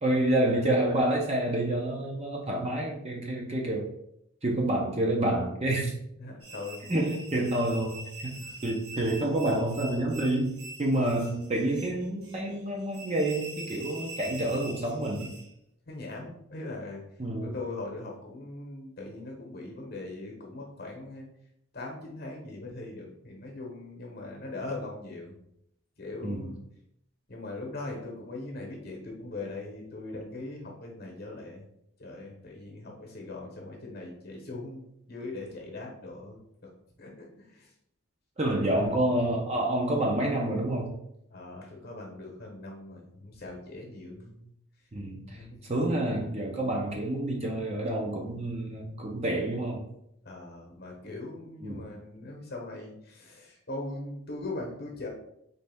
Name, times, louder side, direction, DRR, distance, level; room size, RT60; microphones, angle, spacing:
voice 1, 0.0-3.9 4.4-5.9 6.9-8.4 8.6-10.5 10.8-15.3 17.2-17.6 26.2-26.5 38.4-40.9 44.9-49.8 51.6-51.8, right 1 dB, 30° right, -1 dB, 0.7 m, -28 dB
voice 2, 6.2-6.9 8.3-8.6 10.9-11.3 15.9-17.0 17.4-21.3 21.7-25.4 26.0-26.6 27.3-31.7 32.0-36.4 37.0-37.7 41.3-44.5 45.3-45.6 50.2-55.1, left 2 dB, 45° left, 0 dB, 1.0 m, -40 dB
sound 1, 6.4-15.5, right 2 dB, 80° right, 1.5 m, -44 dB
4.1 x 3.2 x 3.5 m, 0.77 s
head